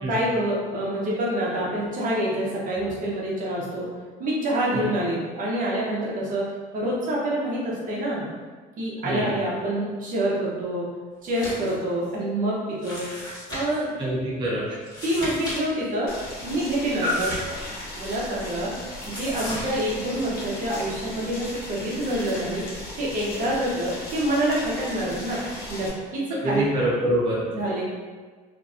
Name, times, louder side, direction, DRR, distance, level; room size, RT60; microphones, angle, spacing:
voice 1, 0.1-3.9 4.2-6.4 6.7-8.2 8.8-10.9 11.2-13.0 13.5-13.9 15.0-16.1 16.4-17.3 17.9-18.7 19.1-22.6 23.0-25.4 25.7-26.6 27.5-27.8, right 1 dB, 55° right, -5 dB, 0.8 m, -26 dB
sound 1, 11.2-11.7 12.0-12.1 12.8-13.8 14.8-15.6 15.8-15.9 17.0-18.1 19.1-19.7, left 1 dB, 25° left, 1.3 m, -35 dB
voice 2, 14.0-14.6 17.0-17.1 26.4-27.4, right 1 dB, 30° right, -6 dB, 0.6 m, -25 dB
Boiling, 16.1-25.9, left 1 dB, 65° left, 0.9 m, -37 dB
2.8 x 2.5 x 2.4 m, 1.4 s
cardioid pair, 110°, 17 cm